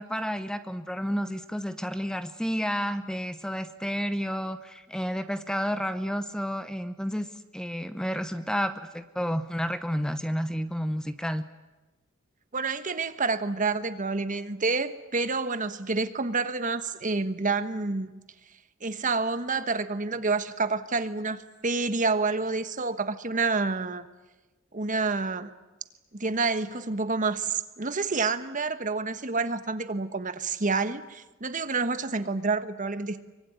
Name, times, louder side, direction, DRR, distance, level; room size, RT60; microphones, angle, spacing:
voice 1, 0.0-7.3 7.5-11.4, equal, 5° left, 10 dB, 0.9 m, -31 dB
voice 2, 12.5-18.1 18.8-24.0 24.7-25.5 26.1-33.2, right 4 dB, 40° right, 11 dB, 1.3 m, -28 dB
24.5 x 24.0 x 9.5 m, 1.1 s
head